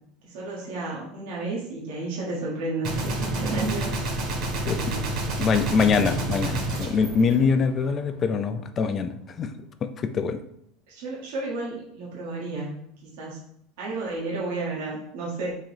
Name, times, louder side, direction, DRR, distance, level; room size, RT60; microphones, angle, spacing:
voice 1, 0.2-3.9 4.6-5.2 5.5-5.9 10.9-12.7 13.0-13.4 13.8-15.6, right 2 dB, 75° right, -5 dB, 1.2 m, -32 dB
Gunshot gunfire, 2.8-8.1, right 2 dB, 55° right, 1.3 m, -29 dB
voice 2, 5.4-9.1 9.4-9.5 9.8-10.4, left 5 dB, 30° left, 10 dB, 0.4 m, -24 dB
3.8 x 2.9 x 4.6 m, 0.71 s
supercardioid pair, 140°, 0 cm